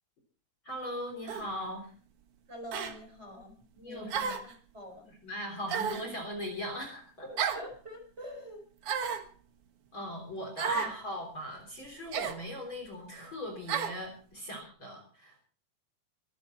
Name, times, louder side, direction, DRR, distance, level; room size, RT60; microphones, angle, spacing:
voice 1, 0.6-1.9 3.8-4.5 5.2-7.3 9.9-15.4, equal, 35° left, 2 dB, 3.9 m, -39 dB
sound 1, 1.3-1.5 2.7-3.0 4.1-4.5 5.7-6.1 7.4-7.7 8.8-9.3 10.6-10.9 12.1-12.4 13.7-14.0, right 7 dB, 60° right, 1.6 m, -32 dB
voice 2, 2.5-3.6 3.8-4.4 4.7-5.1 7.2-8.9 10.7-10.9, left 1 dB, 15° right, 2 dB, 4.7 m, -45 dB
23.5 x 11.0 x 4.3 m, 0.42 s
omnidirectional pair, 4.4 m